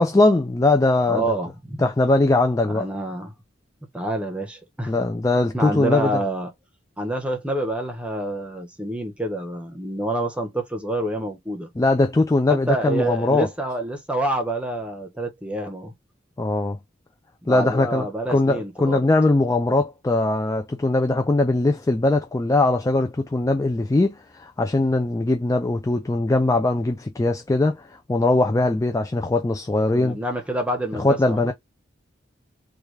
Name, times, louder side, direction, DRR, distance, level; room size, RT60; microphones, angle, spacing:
voice 1, 0.0-1.3 1.8-2.9 4.9-6.2 11.8-13.5 16.4-16.8 17.5-30.2 31.0-31.5, left 2 dB, 20° left, 0.4 m, -21 dB
voice 2, 1.1-1.8 2.7-3.3 3.9-4.9 5.5-6.5 7.0-11.7 12.7-15.9 17.4-19.0 29.9-31.5, right 1 dB, 5° right, 1.0 m, -27 dB
3.3 x 2.4 x 3.2 m
head